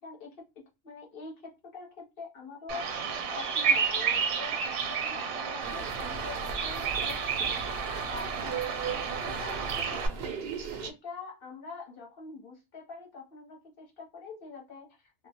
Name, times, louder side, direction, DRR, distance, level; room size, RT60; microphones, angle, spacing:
voice 1, 0.0-7.6 8.0-15.3, left 4 dB, 50° left, 0.8 m, -45 dB
Bird vocalization bird call bird song, 2.7-10.1, right 6 dB, 80° right, 1.0 m, -31 dB
sound 1, 5.6-10.9, right 6 dB, 65° right, 0.6 m, -38 dB
2.3 x 2.0 x 2.7 m
omnidirectional pair, 1.4 m